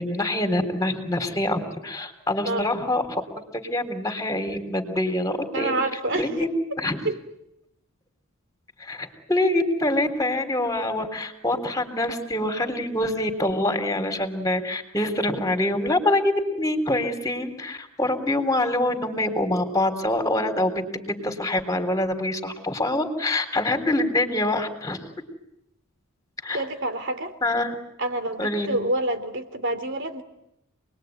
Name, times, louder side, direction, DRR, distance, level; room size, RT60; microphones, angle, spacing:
voice 1, 0.0-3.0 3.5-5.7 6.1-6.5 6.8-7.0 8.8-25.1 26.4-26.6 27.4-27.7 28.4-28.8, left 1 dB, 15° left, 7 dB, 3.8 m, -25 dB
voice 2, 5.5-6.3 7.0-7.2 26.5-27.3 28.0-30.2, right 2 dB, 60° right, 8 dB, 3.4 m, -27 dB
28.5 x 21.5 x 9.5 m, 0.85 s
head